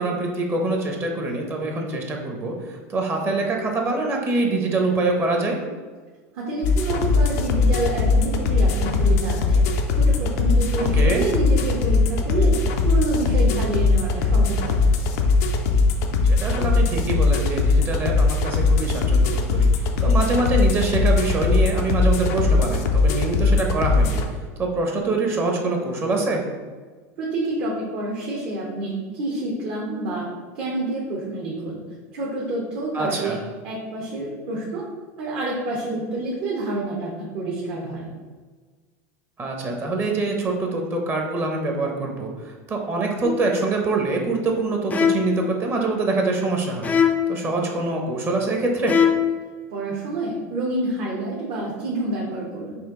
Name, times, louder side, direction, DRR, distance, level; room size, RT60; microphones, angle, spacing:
voice 1, 0.0-5.6 10.8-11.2 16.3-24.2 24.6-26.4 32.9-33.4 39.4-46.9 47.3-49.0, right 3 dB, 30° right, 1 dB, 0.8 m, -24 dB
voice 2, 6.3-9.6 9.9-12.6 12.8-14.8 27.2-30.3 30.5-31.8 32.1-33.4 33.6-34.8 35.2-38.1 49.7-52.8, right 2 dB, 55° right, -5 dB, 1.0 m, -28 dB
sound 1, 6.6-24.2, left 3 dB, 70° left, 0.5 m, -20 dB
sound 2, 43.2-43.6 44.9-45.5 46.8-47.4 48.9-49.4, left 7 dB, 20° left, 0.4 m, -21 dB
4.3 x 2.6 x 3.6 m, 1.4 s
supercardioid pair, 115°, 8 cm